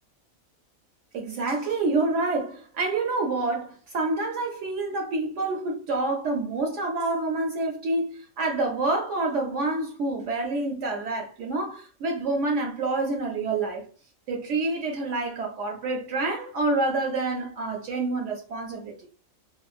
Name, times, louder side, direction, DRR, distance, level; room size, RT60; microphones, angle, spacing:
voice 1, 1.1-13.9 14.3-19.1, right 3 dB, 70° right, 0.8 m, -27 dB
3.0 x 2.1 x 2.4 m
omnidirectional pair, 1.4 m